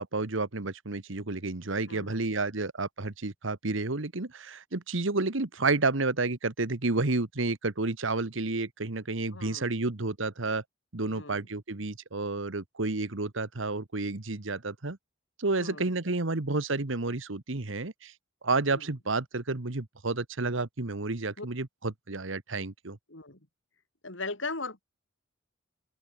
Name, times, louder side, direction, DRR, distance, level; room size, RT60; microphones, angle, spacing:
voice 1, 0.0-10.6 10.9-15.0 15.4-18.1 18.4-23.0, right 3 dB, 70° right, 1.5 m, -30 dB
voice 2, 1.9-2.2 9.3-9.7 11.0-11.5 15.6-15.9 18.7-18.9 21.4-21.5 23.1-23.4 24.0-24.9, left 3 dB, 65° left, 4.0 m, -39 dB
open air
head